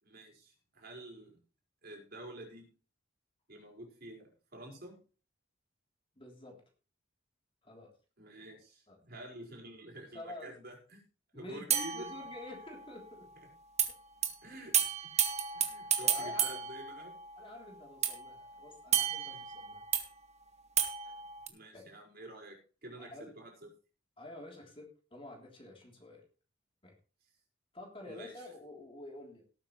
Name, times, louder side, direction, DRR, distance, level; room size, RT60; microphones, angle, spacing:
voice 1, 0.0-1.4 1.8-2.7 3.5-5.0 8.2-11.0 11.3-12.1 14.4-14.9 15.5-17.2 19.3-19.4 21.5-23.7 28.0-28.5, right 1 dB, 55° right, 1 dB, 5.0 m, -49 dB
voice 2, 6.2-6.6 7.6-7.9 8.9-9.0 10.1-10.5 11.3-11.6 11.9-13.3 15.3-15.4 16.0-16.6 17.4-19.8 21.0-21.2 21.7-21.8 23.0-23.3 24.2-26.2 26.8-26.9 27.7-29.4, left 2 dB, 30° left, 0 dB, 3.3 m, -49 dB
sound 1, 11.7-12.9 13.8-13.9 14.2-14.3 14.7-17.5 18.0-20.1 20.8-21.5, right 8 dB, 35° right, 1.7 m, -32 dB
18.0 x 8.9 x 3.2 m, 0.36 s
head